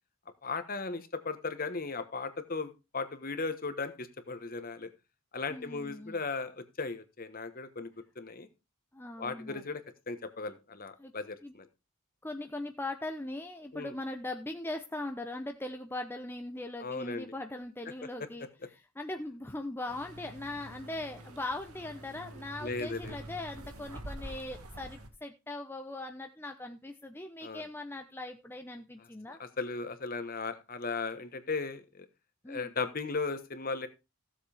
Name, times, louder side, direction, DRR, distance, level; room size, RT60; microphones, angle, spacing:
voice 1, 0.4-4.9 5.3-7.9 8.2-8.5 9.2-9.8 10.1-11.6 13.7-13.9 16.8-17.3 22.6-23.1 27.4-27.6 29.3-32.1 32.5-33.9, left 4 dB, 40° left, 10 dB, 1.2 m, -36 dB
voice 2, 5.5-6.2 8.9-9.6 11.0-11.1 11.4-11.5 12.2-18.5 18.7-29.4 32.4-32.7, left 2 dB, 10° left, 5 dB, 0.7 m, -40 dB
sound 1, 19.9-25.1, right 1 dB, 85° right, 2.0 m, -46 dB
16.0 x 7.5 x 3.4 m, 0.27 s
head